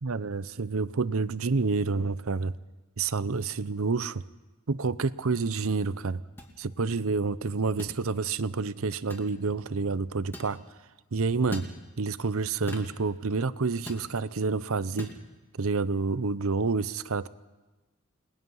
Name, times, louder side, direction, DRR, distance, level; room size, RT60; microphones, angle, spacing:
voice 1, 0.0-2.6 3.0-4.2 4.7-6.2 6.6-10.6 11.1-11.7 12.0-15.1 15.6-17.3, right 4 dB, 65° right, 0.7 m, -28 dB
sound 1, 6.4-6.5 7.8-8.0 9.1-9.3 10.3-10.5 11.5-11.7 12.7-12.9 13.9-14.1 15.0-15.2, equal, 10° left, 2.6 m, -39 dB
29.5 x 20.0 x 5.6 m
head